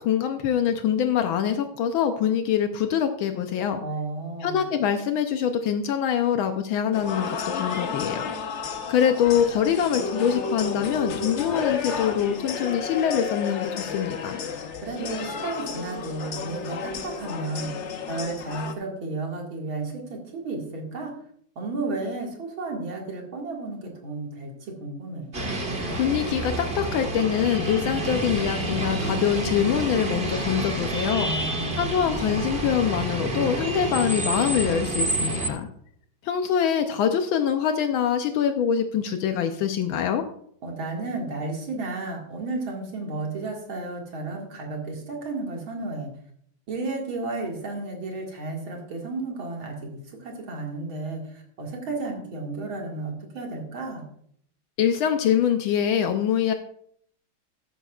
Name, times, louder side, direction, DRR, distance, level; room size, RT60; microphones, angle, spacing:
voice 1, 0.0-3.8 4.4-8.3 8.9-14.4 25.9-31.3 31.7-35.7 36.2-40.2 54.8-56.5, left 8 dB, 80° left, 7 dB, 1.5 m, -24 dB
voice 2, 3.8-4.6 14.8-21.1 21.6-25.4 31.2-31.9 40.6-46.1 46.7-54.1, right 3 dB, 75° right, 0 dB, 2.8 m, -33 dB
sound 1, 6.9-18.7, left 5 dB, 60° left, 0.7 m, -32 dB
sound 2, 25.3-35.5, right 1 dB, 30° right, 1.7 m, -28 dB
13.5 x 10.0 x 2.4 m, 0.65 s
omnidirectional pair, 2.2 m